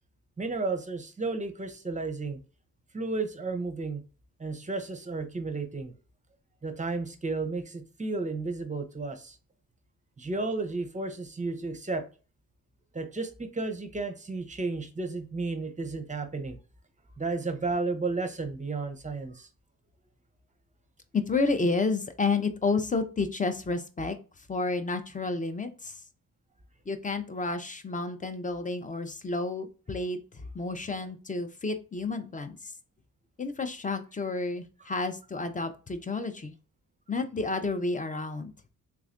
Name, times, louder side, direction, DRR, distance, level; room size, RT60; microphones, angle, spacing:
voice 1, 0.4-2.4 2.9-4.0 4.4-5.9 6.6-9.4 10.2-12.0 12.9-16.6 17.2-19.5, right 3 dB, 20° right, 8 dB, 0.6 m, -33 dB
voice 2, 21.1-24.2 24.5-26.0 26.9-32.7 33.4-36.5 37.1-38.5, left 3 dB, 20° left, 8 dB, 0.5 m, -30 dB
3.4 x 3.1 x 2.5 m, 0.34 s
cardioid pair, 90°, 35 cm